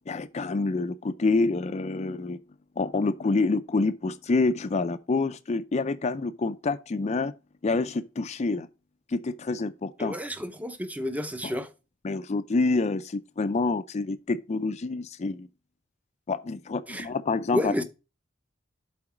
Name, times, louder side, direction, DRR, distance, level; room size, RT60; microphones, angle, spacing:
voice 1, 0.1-2.4 2.8-7.3 7.6-8.7 9.1-10.1 11.4-11.6 12.0-15.5 16.3-17.7, left 3 dB, 35° left, 0.4 m, -27 dB
voice 2, 10.0-11.7 16.9-17.1 17.5-17.8, left 1 dB, 10° right, 0.7 m, -30 dB
7.6 x 4.0 x 5.9 m
head